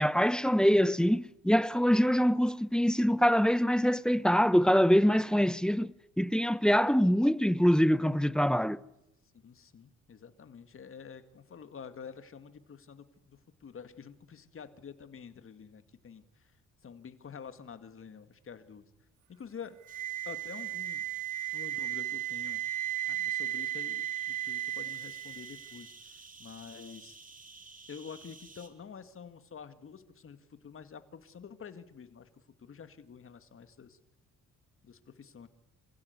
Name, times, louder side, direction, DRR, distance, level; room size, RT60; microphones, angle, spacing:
voice 1, 0.0-8.8, equal, 5° left, 0.8 m, -24 dB
voice 2, 9.4-16.2 16.8-18.9 19.3-19.8 20.3-21.0 21.5-22.6 23.1-25.9 26.4-27.2 27.9-32.3 32.6-34.0 34.8-35.5, left 6 dB, 45° left, 2.2 m, -48 dB
sound 1, 19.9-28.7, right 3 dB, 25° right, 3.7 m, -54 dB
Wind instrument woodwind instrument, 19.9-25.9, right 14 dB, 85° right, 0.8 m, -35 dB
26.0 x 16.0 x 8.2 m
cardioid pair, 90°, 30 cm